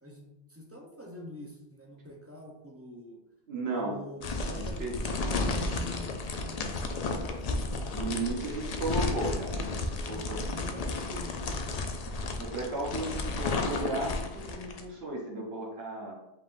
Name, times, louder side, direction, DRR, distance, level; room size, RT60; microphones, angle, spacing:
voice 1, 0.0-3.2 3.7-7.9 10.1-11.7, left 1 dB, 20° right, -1 dB, 0.5 m, -46 dB
voice 2, 3.5-4.0 4.5-5.0 7.9-10.4 12.4-16.1, right 2 dB, 75° right, -1 dB, 1.1 m, -35 dB
sound 1, 4.2-14.8, left 3 dB, 55° left, 0.4 m, -33 dB
5.1 x 3.6 x 2.5 m, 0.89 s
omnidirectional pair, 1.1 m